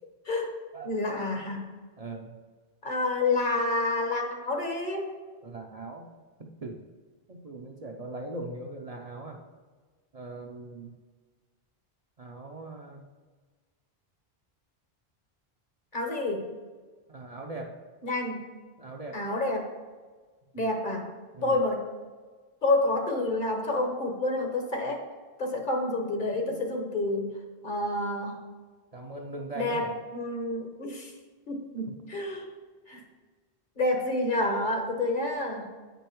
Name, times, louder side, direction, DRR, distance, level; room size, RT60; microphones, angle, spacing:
voice 1, 0.8-1.7 2.8-5.1 15.9-16.5 18.0-18.4 19.1-19.7 20.5-21.1 21.4-21.9 22.6-25.0 25.4-27.3 27.6-28.4 29.5-31.1 31.5-32.4 32.9-33.0 33.8-35.7, left 2 dB, 50° left, 3 dB, 1.2 m, -29 dB
voice 2, 2.0-2.4 5.4-6.1 6.4-6.9 7.3-9.4 10.1-11.0 12.2-13.1 17.1-17.8 18.8-19.2 20.6-20.7 21.3-21.6 26.2-26.5 28.9-29.9 31.9-32.0, right 2 dB, 40° right, 2 dB, 0.7 m, -40 dB
8.5 x 5.3 x 4.5 m, 1.4 s
omnidirectional pair, 1.0 m